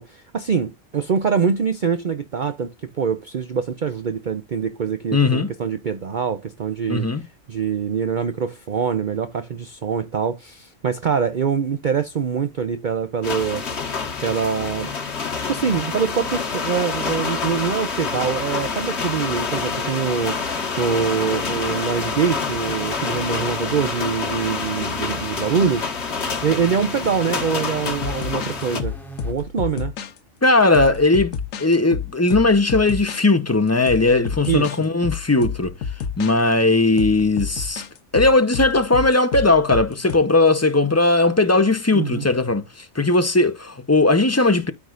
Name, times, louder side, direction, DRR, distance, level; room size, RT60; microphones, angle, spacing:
voice 1, 0.0-7.1 7.5-13.9 14.2-14.9 15.5-20.4 20.8-26.0 26.4-29.0 29.2-29.9 34.5-34.8 41.9-42.2, right 6 dB, 45° right, 0.7 m, -24 dB
voice 2, 5.1-5.5 6.9-7.2 30.4-35.7 36.2-37.8 38.1-44.7, left 2 dB, 20° left, 0.5 m, -18 dB
sound 1, 13.2-28.8, left 5 dB, 55° left, 1.7 m, -27 dB
sound 2, 18.2-29.4, right 1 dB, ahead, 3.0 m, -42 dB
sound 3, 27.9-30.2 30.7-33.2 33.9-34.8 35.0-36.3 37.0-40.2, left 6 dB, 85° left, 1.2 m, -30 dB
13.5 x 4.9 x 2.4 m
omnidirectional pair, 1.3 m